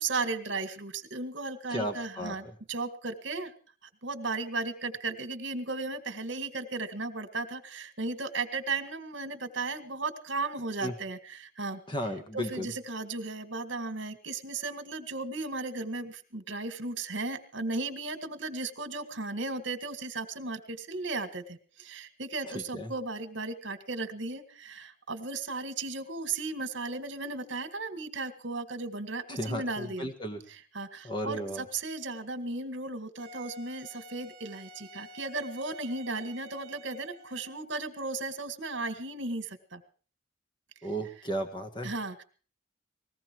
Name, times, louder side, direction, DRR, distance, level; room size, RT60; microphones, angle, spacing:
voice 1, 0.0-3.5 4.0-11.8 12.3-30.1 30.5-39.8 41.8-42.2, right 3 dB, 65° right, 9 dB, 1.9 m, -35 dB
voice 2, 1.7-2.3 10.8-10.9 11.9-12.7 22.7-22.9 29.3-30.4 31.0-31.6 40.8-41.9, equal, 25° left, 7 dB, 1.6 m, -34 dB
Wind instrument woodwind instrument, 33.2-37.7, right 1 dB, 50° right, 1.7 m, -50 dB
20.0 x 15.5 x 4.6 m, 0.41 s
head